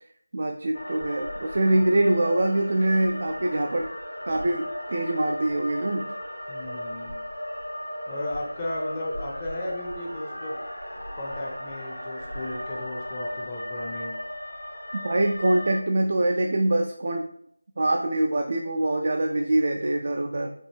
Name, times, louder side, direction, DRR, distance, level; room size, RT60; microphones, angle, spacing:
voice 1, 0.3-3.9 4.3-6.1 14.9-17.3 17.8-20.5, right 1 dB, 40° right, 3 dB, 0.3 m, -24 dB
sound 1, 0.7-15.8, left 1 dB, 85° left, 1.6 m, -36 dB
voice 2, 6.5-7.2 8.1-10.6 11.2-14.1, left 1 dB, 15° left, -2 dB, 0.6 m, -34 dB
5.2 x 2.7 x 3.2 m, 0.71 s
figure-of-eight pair, 165°, 0 cm